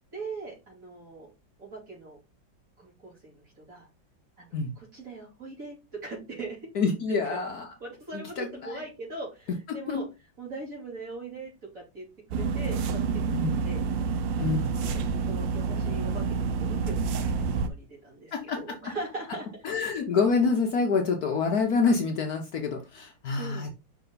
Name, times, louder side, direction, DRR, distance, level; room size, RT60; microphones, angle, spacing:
voice 1, 0.1-1.3 1.6-2.2 2.8-3.9 4.4-5.8 6.0-6.7 7.1-7.4 7.8-10.1 10.4-12.1 12.3-13.0 13.4-13.8 14.4-15.0 15.3-16.5 16.8-19.5 23.3-23.7, right 3 dB, 45° right, 3.4 m, -40 dB
voice 2, 6.7-7.7 8.1-8.8 9.7-10.1 13.3-13.6 14.4-14.6 18.3-18.9 19.6-23.7, left 4 dB, 60° left, 1.2 m, -27 dB
sound 1, 12.3-17.7, right 5 dB, 75° right, 1.4 m, -28 dB
5.4 x 4.5 x 3.9 m
omnidirectional pair, 2.1 m